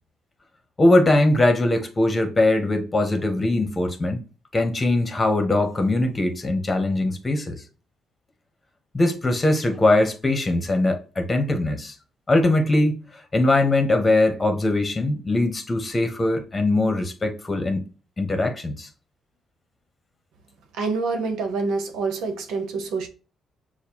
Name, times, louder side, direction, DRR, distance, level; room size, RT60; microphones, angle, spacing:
voice 1, 0.8-4.2 4.5-7.6 8.9-11.9 12.3-13.1 13.3-17.9 18.2-18.9, left 2 dB, 25° left, 1.1 m, -21 dB
voice 2, 20.7-23.1, right 4 dB, 85° right, 1.0 m, -26 dB
6.6 x 2.3 x 3.0 m
cardioid pair, 90°, 0 cm